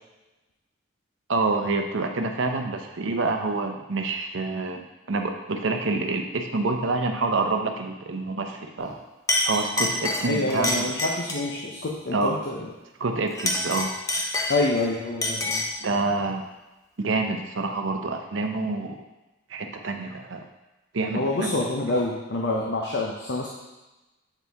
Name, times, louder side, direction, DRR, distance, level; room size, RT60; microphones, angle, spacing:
voice 1, 1.3-9.0 9.4-10.9 12.1-12.3 13.0-13.9 15.8-16.4 17.0-19.0 19.5-20.5 20.9-21.5, right 3 dB, 65° right, 4 dB, 0.6 m, -27 dB
Chink clink, 8.8-9.0 9.3-11.5 13.3-14.8 15.2-15.8, left 1 dB, 15° left, 0.5 m, -27 dB
voice 2, 10.3-12.7 14.5-15.6 21.1-23.5, left 2 dB, 55° left, -1 dB, 0.6 m, -27 dB
7.9 x 4.5 x 3.4 m, 1.1 s
head